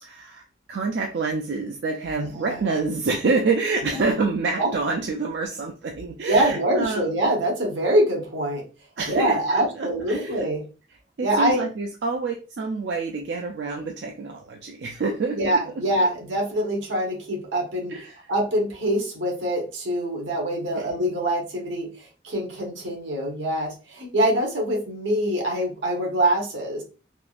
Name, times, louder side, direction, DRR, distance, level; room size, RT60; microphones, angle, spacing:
voice 1, 0.0-7.1 9.0-10.5 11.2-15.6 17.9-18.3 20.8-20.9, right 3 dB, 65° right, 1 dB, 0.4 m, -27 dB
voice 2, 2.2-2.6 4.6-4.7 6.3-8.6 9.1-10.6 11.2-11.6 15.3-17.9 18.3-21.9 22.2-26.8, right 1 dB, 90° right, -1 dB, 1.2 m, -24 dB
3.6 x 2.4 x 2.4 m, 0.34 s
head